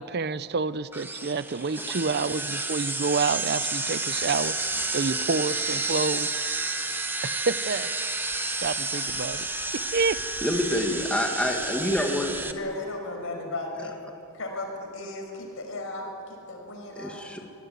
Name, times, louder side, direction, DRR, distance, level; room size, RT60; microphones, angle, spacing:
voice 1, 0.0-4.5 4.9-6.3 7.2-7.9 8.6-9.5 9.7-10.2, right 4 dB, 50° right, 15 dB, 0.6 m, -28 dB
sound 1, 0.9-12.5, right 2 dB, 10° right, 1.2 m, -30 dB
voice 2, 10.4-12.3 17.0-17.4, left 1 dB, 5° left, 1 dB, 2.0 m, -27 dB
voice 3, 12.5-14.0 14.3-17.2, left 2 dB, 65° left, 3 dB, 5.8 m, -35 dB
25.0 x 19.5 x 9.4 m, 2.8 s
head